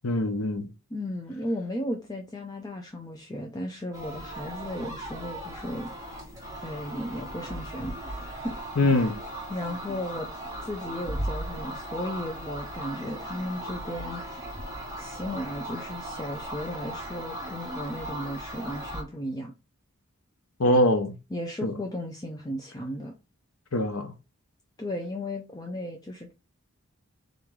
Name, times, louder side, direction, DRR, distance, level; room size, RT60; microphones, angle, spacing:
voice 1, 0.0-0.7 8.8-9.1 20.6-21.2 21.6-21.7 23.7-24.1, left 1 dB, 90° left, 0.8 m, -23 dB
voice 2, 0.9-5.9 6.6-8.5 8.9-9.1 9.5-10.3 10.6-14.2 14.5-14.6 15.0-19.5 21.3-23.1 24.8-26.3, left 1 dB, 20° left, 0.5 m, -35 dB
sound 1, 3.9-19.0, right 1 dB, 15° right, 1.2 m, -37 dB
3.8 x 3.0 x 3.6 m
head